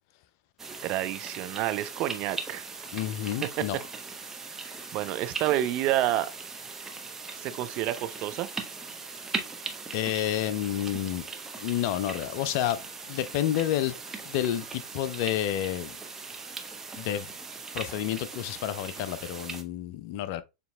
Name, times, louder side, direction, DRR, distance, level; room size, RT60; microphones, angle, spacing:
sound 1, 0.6-19.6, right 4 dB, 15° right, 0.8 m, -39 dB
voice 1, 0.8-2.7 3.4-3.5 4.5-6.3 7.4-8.5, right 13 dB, 45° right, 0.5 m, -29 dB
voice 2, 2.9-3.8 9.9-11.2 11.5-12.8 13.1-13.9 14.2-16.0 17.0-17.3 17.7-20.4, left 12 dB, 50° left, 0.4 m, -29 dB
6.8 x 2.8 x 2.2 m
hypercardioid pair, 95°, 2 cm